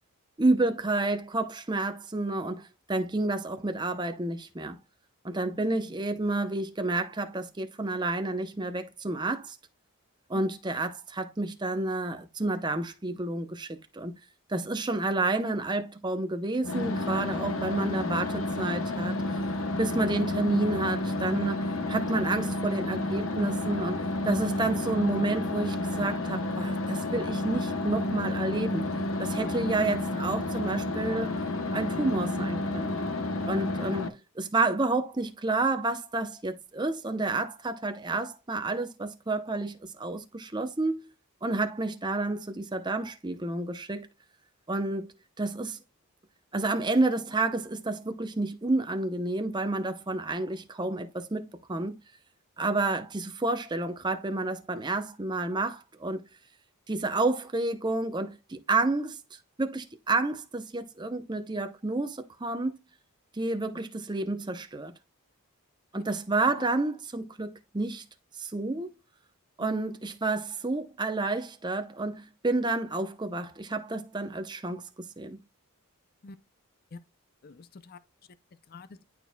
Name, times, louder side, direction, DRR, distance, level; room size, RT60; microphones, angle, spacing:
voice 1, 0.4-4.8 5.2-9.6 10.3-14.2 14.5-19.4 19.8-28.9 29.2-31.4 31.7-33.0 33.5-41.1 41.4-44.1 44.7-45.1 45.4-45.8 46.5-51.9 52.6-56.2 56.9-59.2 59.6-62.7 63.3-64.9 65.9-68.0 68.4-68.9 69.6-74.9 75.2-75.4, right 2 dB, 20° right, 0.7 m, -30 dB
sound 1, 16.6-34.1, left 2 dB, 60° left, 0.9 m, -31 dB
voice 2, 77.4-78.0 78.7-79.0, left 3 dB, 40° left, 0.5 m, -47 dB
11.5 x 4.3 x 2.2 m
head